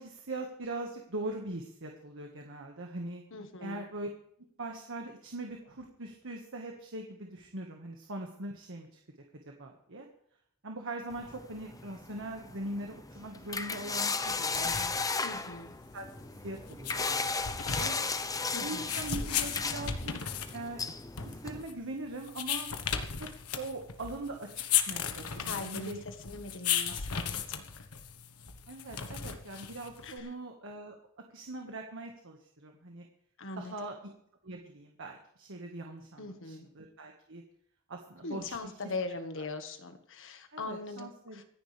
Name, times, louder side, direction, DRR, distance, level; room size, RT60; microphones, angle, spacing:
voice 1, 0.0-3.2 3.6-4.1 4.6-9.0 9.4-10.1 10.6-15.0 15.3-15.4 15.9-16.1 16.4-17.9 18.6-20.8 21.2-22.7 23.2-23.3 23.5-24.5 24.8-26.0 26.9-27.0 28.7-30.9 31.3-33.1 33.6-34.1 34.4-37.4 37.9-38.7 39.4-39.5 40.5-41.4, right 2 dB, 60° right, 2 dB, 1.7 m, -41 dB
voice 2, 3.3-3.8 15.2-15.7 18.5-18.9 25.4-27.9 30.0-30.3 33.4-33.7 36.2-36.7 38.2-41.4, left 3 dB, 60° left, 7 dB, 1.5 m, -41 dB
sound 1, 11.1-21.6, left 4 dB, 15° left, 0.8 m, -36 dB
sound 2, 14.3-30.2, left 8 dB, 90° left, 1.3 m, -36 dB
25.5 x 10.5 x 3.4 m, 0.70 s
head